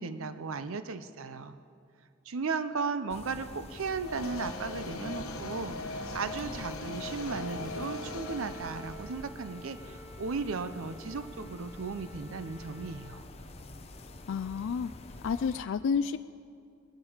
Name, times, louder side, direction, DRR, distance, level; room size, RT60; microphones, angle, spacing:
voice 1, 0.0-1.6 2.3-13.2, right 4 dB, 70° right, 0.6 m, -36 dB
sound 1, 3.1-15.6, left 2 dB, 30° left, 0.7 m, -47 dB
sound 2, 4.0-9.2, left 2 dB, 80° left, 1.1 m, -39 dB
Wind instrument woodwind instrument, 7.0-13.3, equal, 5° right, 0.6 m, -51 dB
voice 2, 14.3-14.9 15.2-16.2, left 6 dB, 60° left, 0.3 m, -30 dB
20.0 x 10.0 x 5.0 m
head